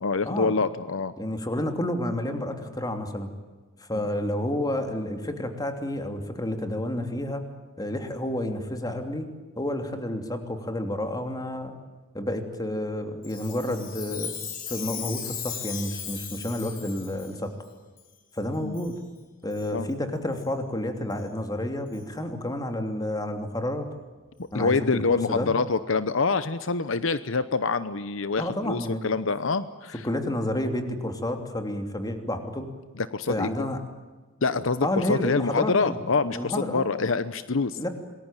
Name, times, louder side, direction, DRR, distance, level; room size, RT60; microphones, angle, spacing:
voice 1, 0.0-1.1 3.9-4.0 18.6-18.8 19.7-19.9 24.4-30.1 33.0-33.5 34.4-37.8, left 4 dB, 70° left, 13 dB, 0.9 m, -26 dB
voice 2, 1.2-3.3 3.8-7.5 7.8-9.3 9.6-11.8 12.1-14.3 14.7-17.5 18.3-19.0 19.4-23.9 24.5-25.5 28.4-29.0 30.0-32.7 33.3-33.8 34.8-36.0 36.3-36.9 37.8-37.9, left 1 dB, 20° left, 6 dB, 3.1 m, -30 dB
Chime, 13.2-17.3 18.0-18.1 18.7-18.9 19.5-19.7 20.4-20.5 21.1-21.2 21.9-22.0, left 8 dB, 45° left, 4.0 m, -37 dB
27.0 x 21.0 x 9.1 m, 1.3 s
head